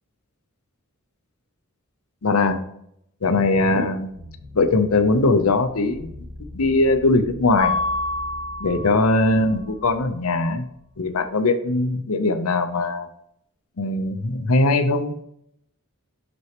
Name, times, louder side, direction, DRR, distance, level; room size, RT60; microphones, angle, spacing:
voice 1, 2.2-2.6 3.2-4.1 4.5-6.1 6.5-7.8 8.6-10.7 11.0-13.1 13.8-15.1, left 2 dB, 85° left, 9 dB, 0.7 m, -20 dB
sound 1, 4.1-11.2, left 1 dB, 55° right, 2.1 m, -42 dB
Mallet percussion, 7.6-9.4, left 2 dB, 75° right, 2.1 m, -27 dB
6.3 x 6.1 x 3.0 m, 0.72 s
head